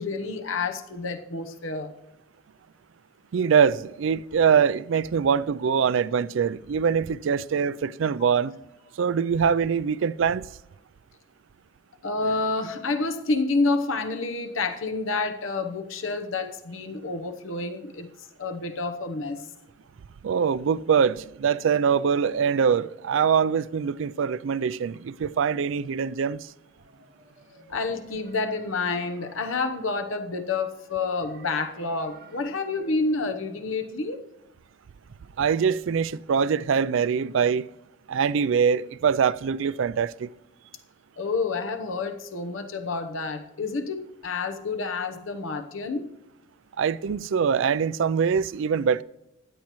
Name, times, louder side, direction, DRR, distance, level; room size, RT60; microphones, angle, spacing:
voice 1, 0.0-1.9 12.0-19.5 27.7-34.2 41.2-46.1, left 3 dB, 75° left, 0.9 m, -29 dB
voice 2, 3.3-8.6 9.0-10.5 20.2-26.5 35.4-37.7 38.1-40.3 46.8-49.0, right 6 dB, 70° right, 0.4 m, -23 dB
sound 1, 26.8-33.9, right 3 dB, 50° right, 1.9 m, -54 dB
16.0 x 10.5 x 3.1 m
head